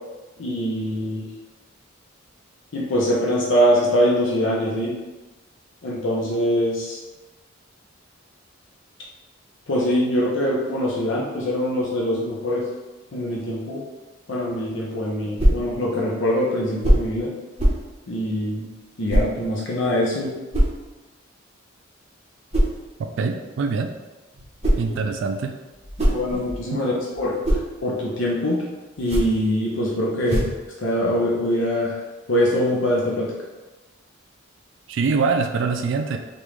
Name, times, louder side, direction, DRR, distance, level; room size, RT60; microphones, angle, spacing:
voice 1, 0.4-1.3 2.7-4.9 5.8-7.0 9.7-12.7 13.1-13.8 14.3-17.3 18.1-18.7 19.0-20.3 26.1-27.4 27.8-28.6 29.0-30.5 30.8-32.0 32.3-33.3, equal, 70° left, -4 dB, 0.6 m, -23 dB
sound 1, 15.4-15.7 16.8-17.1 17.6-17.9 19.1-19.3 20.5-20.8 22.5-22.8 24.3-24.9 25.7-26.7 27.1-27.7 28.9-29.4 30.2-30.6, equal, 30° right, 0.7 m, -21 dB
voice 2, 23.2-23.9 24.8-25.5 34.9-36.2, right 4 dB, 65° right, 5 dB, 0.3 m, -23 dB
3.4 x 2.5 x 3.0 m, 1.1 s
head